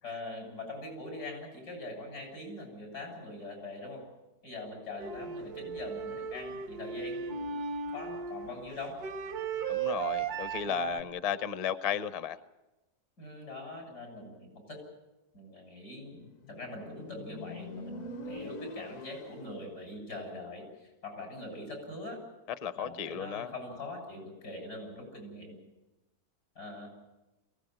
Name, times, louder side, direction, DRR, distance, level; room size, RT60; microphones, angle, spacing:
voice 1, 0.0-4.0 4.4-7.6 7.9-9.0 10.6-11.0 13.2-14.8 15.3-22.2 22.8-25.6 26.5-26.9, left 2 dB, 90° left, 2 dB, 8.1 m, -43 dB
sound 1, 5.0-11.0, right 6 dB, 80° right, 1.5 m, -36 dB
voice 2, 9.7-12.4 22.6-23.5, left 9 dB, 35° left, 12 dB, 0.6 m, -34 dB
Motorcycle, 16.2-19.7, left 1 dB, 60° left, 1.2 m, -44 dB
23.0 x 17.0 x 9.1 m, 1.0 s
omnidirectional pair, 1.6 m